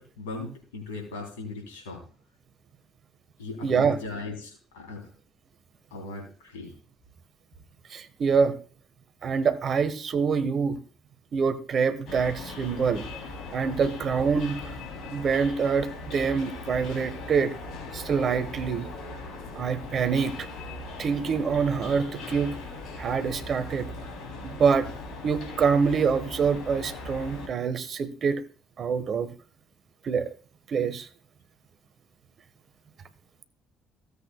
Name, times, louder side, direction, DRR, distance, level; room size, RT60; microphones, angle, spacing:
voice 1, 0.0-2.0 3.4-5.1 5.9-6.7 22.3-22.4, left 3 dB, 80° left, 1 dB, 3.1 m, -38 dB
voice 2, 3.6-4.0 7.9-8.6 9.2-10.8 11.3-13.0 13.5-14.6 15.1-17.5 17.9-18.9 19.5-20.5 21.0-22.5 23.0-23.9 24.4-24.9 25.2-28.4 28.8-29.3 30.0-30.3 30.7-31.1, right 6 dB, 45° right, 11 dB, 1.1 m, -25 dB
sound 1, 12.1-27.5, left 2 dB, 60° left, 2.9 m, -39 dB
16.5 x 8.2 x 2.2 m, 0.39 s
hypercardioid pair, 50°, 0 cm